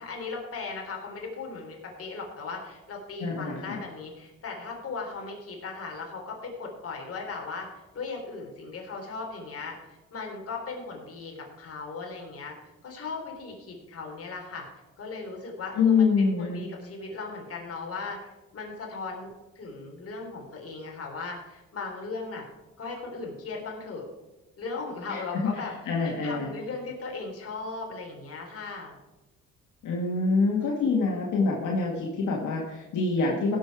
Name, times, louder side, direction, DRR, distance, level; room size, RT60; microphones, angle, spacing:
voice 1, 0.0-7.7 7.9-12.6 12.8-14.7 15.0-19.3 19.6-22.5 22.8-24.0 24.6-25.7 26.0-28.9, left 4 dB, 50° left, 0 dB, 3.7 m, -37 dB
voice 2, 3.2-3.8 15.8-16.7 25.1-26.5 29.8-33.6, left 4 dB, 80° left, -2 dB, 2.0 m, -26 dB
16.5 x 6.6 x 4.8 m, 1.1 s
cardioid pair, 90°, 30 cm